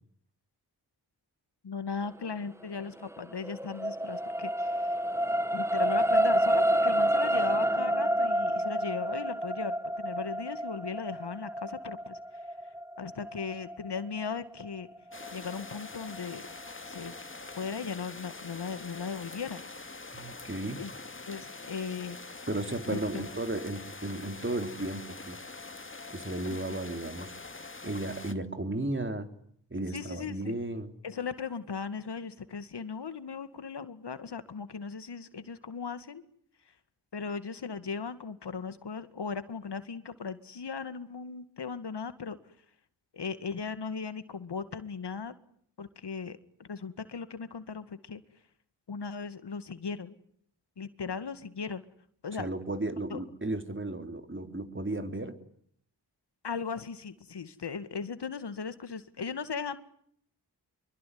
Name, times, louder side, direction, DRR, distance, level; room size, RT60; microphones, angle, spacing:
voice 1, 1.6-5.0 5.5-12.4 13.0-14.9 15.3-16.4 16.8-17.1 17.6-19.6 20.8-20.9 21.3-22.2 22.9-23.2 29.9-30.5 31.0-36.2 36.7-36.8 37.1-42.5 43.1-45.4 45.8-48.2 48.9-50.2 50.8-51.8 52.2-52.5 53.1-53.2 56.4-59.8, left 5 dB, 65° left, 12 dB, 2.1 m, -37 dB
sound 1, 3.0-15.5 16.0-16.2, right 1 dB, 5° right, 1.3 m, -29 dB
sound 2, 15.1-28.3, left 3 dB, 30° left, 2.3 m, -44 dB
voice 2, 20.1-20.8 22.5-25.4 26.1-27.3 27.8-29.3 29.7-30.9 52.4-55.4, right 2 dB, 25° right, 7 dB, 4.2 m, -34 dB
26.0 x 23.0 x 9.6 m, 0.66 s
cardioid pair, 45°, 43 cm